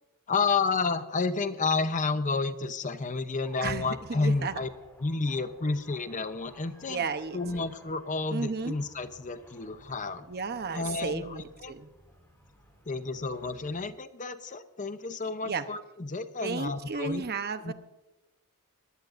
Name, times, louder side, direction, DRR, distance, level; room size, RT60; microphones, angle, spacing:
voice 1, 0.3-4.7 5.0-7.0 7.3-10.3 10.7-11.7 12.9-17.2 17.6-17.7, left 4 dB, 35° left, 11 dB, 0.7 m, -30 dB
sound 1, 3.4-13.8, equal, 10° left, 4.1 m, -55 dB
voice 2, 3.6-4.6 6.9-7.4 8.3-8.8 10.3-11.9 15.4-15.6 16.4-17.7, right 4 dB, 45° right, 10 dB, 0.9 m, -33 dB
23.0 x 16.5 x 2.6 m, 1.0 s
head